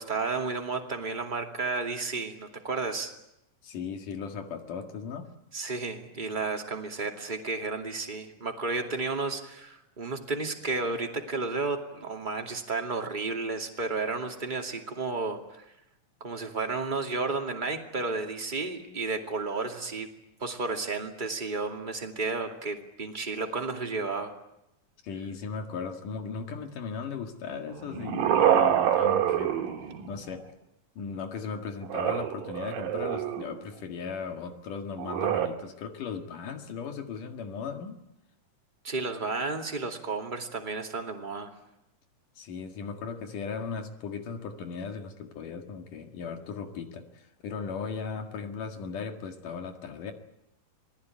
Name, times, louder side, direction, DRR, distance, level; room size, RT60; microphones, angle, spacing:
voice 1, 0.0-3.1 5.5-15.6 16.2-20.1 20.4-24.3 38.8-41.5, right 3 dB, 15° right, 3 dB, 2.1 m, -32 dB
voice 2, 3.6-5.3 25.0-29.6 30.1-30.4 31.0-38.0 42.4-50.1, left 5 dB, 70° left, 5 dB, 3.4 m, -37 dB
sound 1, 27.7-30.3 31.8-33.6 35.0-35.5, right 10 dB, 80° right, 3.2 m, -26 dB
27.0 x 20.0 x 9.2 m, 0.86 s
omnidirectional pair, 3.9 m